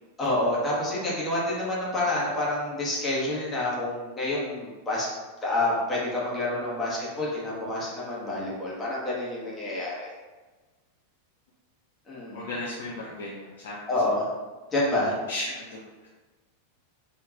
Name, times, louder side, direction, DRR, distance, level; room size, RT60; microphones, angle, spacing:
voice 1, 0.2-5.1 5.4-10.1 12.1-12.4 13.9-14.3 14.7-15.1, left 2 dB, 15° left, -7 dB, 1.2 m, -28 dB
voice 2, 12.3-13.8 15.0-16.1, left 2 dB, 60° left, -4 dB, 0.5 m, -36 dB
4.5 x 2.9 x 2.5 m, 1.3 s
figure-of-eight pair, 90°, 0 cm